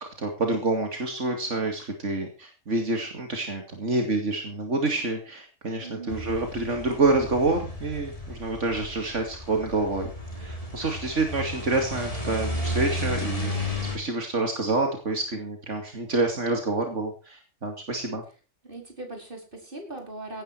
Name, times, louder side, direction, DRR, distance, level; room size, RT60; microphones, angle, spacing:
voice 1, 0.0-10.1 10.4-18.2, right 2 dB, 80° right, 4 dB, 2.8 m, -27 dB
voice 2, 5.8-6.4 18.6-20.4, right 2 dB, 45° right, 3 dB, 5.0 m, -39 dB
sound 1, 6.1-14.0, left 1 dB, 30° left, 3.6 m, -33 dB
17.5 x 10.5 x 4.7 m, 0.33 s
omnidirectional pair, 1.2 m